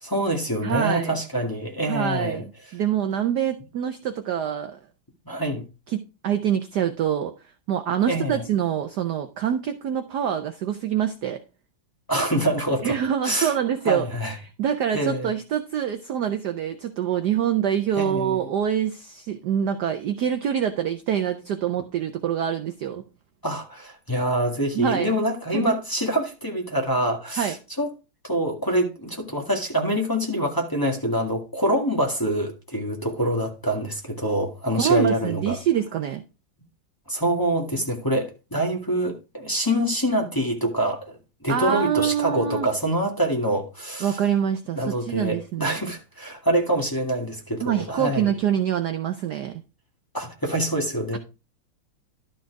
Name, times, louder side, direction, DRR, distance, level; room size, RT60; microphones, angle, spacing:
voice 1, 0.0-2.5 5.3-5.6 8.1-8.4 12.1-13.0 13.2-13.5 13.9-14.4 14.9-15.3 18.0-18.4 23.4-27.9 28.2-35.6 37.1-41.2 41.4-44.2 44.8-48.3 50.1-51.2, right 1 dB, 10° left, 1.7 m, -25 dB
voice 2, 0.6-1.1 1.9-4.8 5.9-7.3 7.7-11.4 12.8-14.1 14.6-23.0 24.7-25.1 25.5-25.8 27.4-27.6 34.7-36.2 41.5-42.7 44.0-45.8 47.6-49.5, right 9 dB, 65° right, 1.1 m, -25 dB
12.5 x 4.4 x 4.6 m
omnidirectional pair, 2.4 m